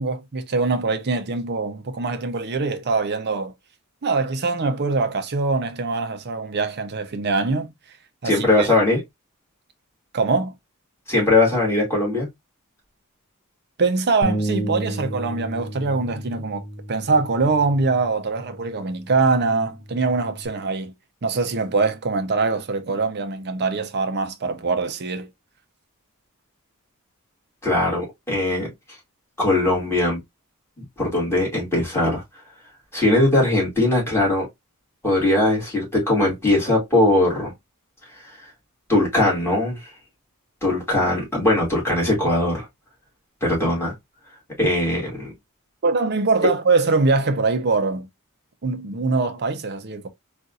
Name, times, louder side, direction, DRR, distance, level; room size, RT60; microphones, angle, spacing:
voice 1, 0.0-3.5 4.0-7.7 8.2-8.7 10.1-10.5 13.8-16.6 16.9-20.9 21.2-25.3 45.8-48.1 48.6-50.1, right 3 dB, 50° right, 0.6 m, -23 dB
voice 2, 8.2-9.0 11.1-12.3 27.6-28.7 29.4-30.2 30.8-32.2 32.9-34.5 35.0-37.5 38.9-39.8 40.6-42.7 43.4-43.9 44.6-45.3, left 2 dB, 10° left, 2.1 m, -20 dB
Bass guitar, 14.2-20.5, right 1 dB, 35° left, 0.9 m, -33 dB
4.0 x 2.5 x 2.3 m
head